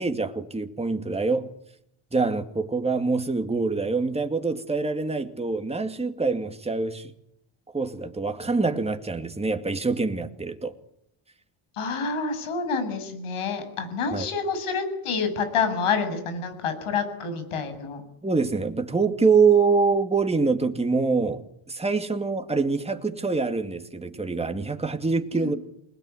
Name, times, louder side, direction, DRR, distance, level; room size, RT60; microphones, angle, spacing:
voice 1, 0.0-1.5 2.1-7.1 7.7-10.7 14.1-14.3 18.2-25.5, right 4 dB, 10° right, 2.3 m, -25 dB
voice 2, 11.7-18.0 25.3-25.5, left 5 dB, 80° left, 7.7 m, -28 dB
28.5 x 21.0 x 9.8 m
cardioid pair, 120°, 50 cm